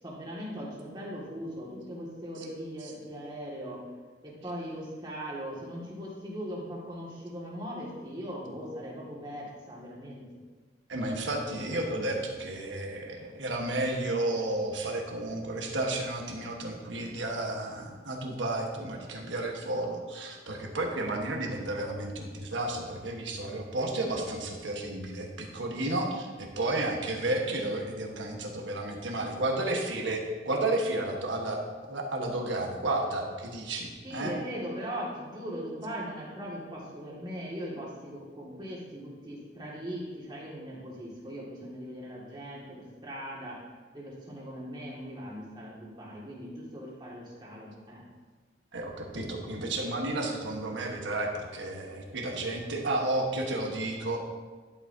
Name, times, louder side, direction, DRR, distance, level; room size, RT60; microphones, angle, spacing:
voice 1, 0.0-3.8 4.2-10.2 34.0-43.6 43.9-48.0, equal, 25° right, -5 dB, 2.0 m, -39 dB
voice 2, 10.9-34.3 48.7-54.2, right 2 dB, 85° right, 1 dB, 1.3 m, -32 dB
11.0 x 7.1 x 2.8 m, 1.4 s
head